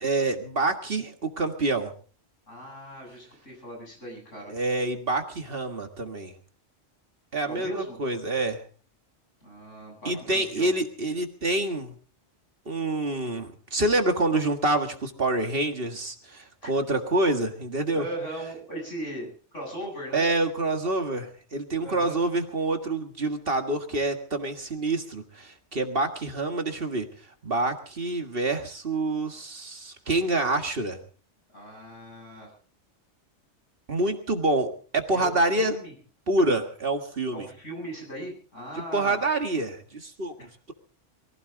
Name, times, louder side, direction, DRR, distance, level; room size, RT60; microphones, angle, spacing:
voice 1, 0.0-1.9 4.5-6.3 7.3-8.6 10.1-11.9 12.7-18.1 20.1-27.1 27.4-31.0 33.9-35.8 36.3-37.5 38.9-40.3, right 2 dB, 50° right, 5 dB, 2.0 m, -27 dB
voice 2, 2.5-4.5 7.5-8.0 9.4-10.7 16.6-16.7 17.9-20.3 21.8-22.2 31.5-32.5 35.1-35.9 37.3-39.2 40.4-40.5, right 1 dB, 85° left, 0 dB, 8.5 m, -38 dB
22.5 x 16.0 x 3.9 m, 0.41 s
omnidirectional pair, 1.2 m